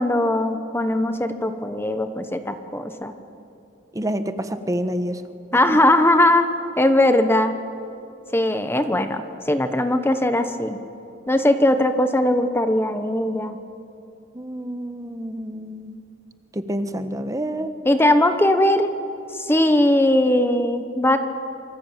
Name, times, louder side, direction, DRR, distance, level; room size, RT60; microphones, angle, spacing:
voice 1, 0.0-3.1 5.5-6.5 6.8-7.6 8.3-10.8 11.3-13.6 17.8-18.9 19.3-21.2, left 1 dB, 10° left, 8 dB, 1.1 m, -19 dB
voice 2, 3.9-5.2 5.5-5.8 14.3-16.0 16.5-17.7, right 1 dB, 20° right, 9 dB, 1.3 m, -28 dB
27.0 x 24.0 x 9.0 m, 2.7 s
head